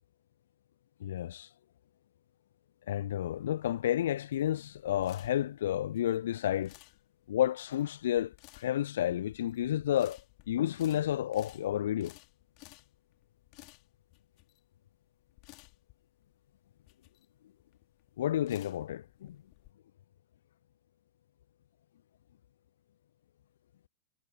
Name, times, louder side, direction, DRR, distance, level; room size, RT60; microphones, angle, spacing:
voice 1, 1.0-1.5 2.9-6.7 7.3-10.2 10.5-12.2 18.2-19.4, left 11 dB, 60° left, 0.6 m, -31 dB
sound 1, 3.2-19.7, left 29 dB, 45° left, 3.1 m, -57 dB
figure-of-eight pair, 90°, 0 cm